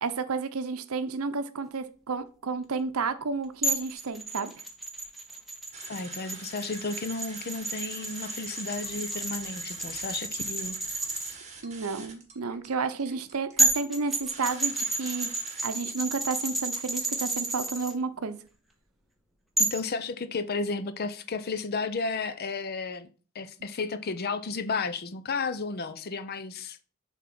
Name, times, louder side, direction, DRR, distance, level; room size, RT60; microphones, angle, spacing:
voice 1, 0.0-4.5 11.6-15.3 15.6-18.4, right 4 dB, 75° right, 0.7 m, -31 dB
sound 1, 3.6-11.3 13.2-13.3 13.6-17.9 19.6-19.9, right 2 dB, ahead, 1.1 m, -31 dB
sound 2, 5.7-15.7, right 4 dB, 30° right, 1.6 m, -47 dB
voice 2, 5.9-10.8 19.6-23.1 23.3-26.8, left 4 dB, 45° left, 0.6 m, -33 dB
7.3 x 3.7 x 6.0 m
head